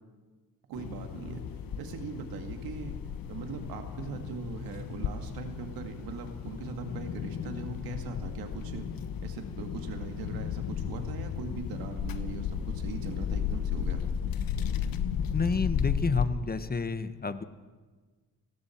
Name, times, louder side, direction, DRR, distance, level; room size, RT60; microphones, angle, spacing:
sound 1, 0.7-16.2, left 8 dB, 75° left, 1.3 m, -34 dB
voice 1, 0.7-1.4 1.8-3.0 3.3-8.9 9.2-14.0, right 5 dB, 90° right, 5 dB, 2.3 m, -40 dB
voice 2, 15.3-17.4, left 4 dB, 25° left, 11 dB, 1.3 m, -30 dB
29.5 x 19.0 x 4.6 m, 1.4 s
supercardioid pair, 65°, 35 cm